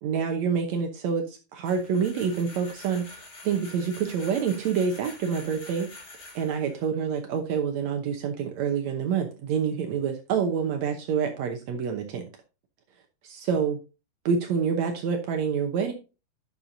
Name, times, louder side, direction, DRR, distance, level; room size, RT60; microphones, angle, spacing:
voice 1, 0.0-5.9 6.3-12.2 13.2-13.8 14.2-15.9, right 6 dB, 85° right, 4 dB, 1.6 m, -27 dB
sound 1, 1.6-6.8, left 2 dB, 35° left, 3.1 m, -46 dB
11.5 x 6.6 x 2.6 m, 0.31 s
omnidirectional pair, 4.5 m